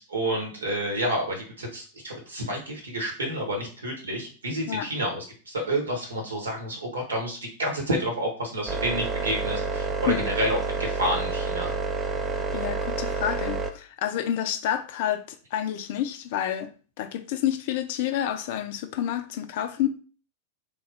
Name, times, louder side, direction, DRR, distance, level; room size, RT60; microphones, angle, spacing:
voice 1, 0.1-11.7, right 1 dB, 70° right, 1.2 m, -29 dB
sound 1, 8.7-13.7, right 4 dB, 20° right, 0.4 m, -29 dB
voice 2, 12.5-16.7 17.0-19.9, left 11 dB, 50° left, 0.4 m, -29 dB
3.3 x 2.3 x 3.3 m
figure-of-eight pair, 90°, 0 cm